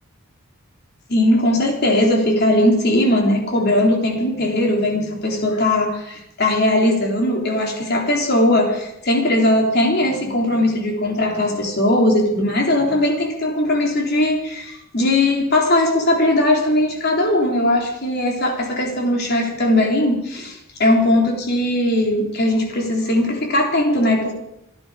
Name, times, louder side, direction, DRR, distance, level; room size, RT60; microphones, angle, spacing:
voice 1, 1.1-24.3, left 1 dB, 50° left, 1 dB, 3.9 m, -19 dB
27.5 x 9.8 x 5.2 m, 0.83 s
head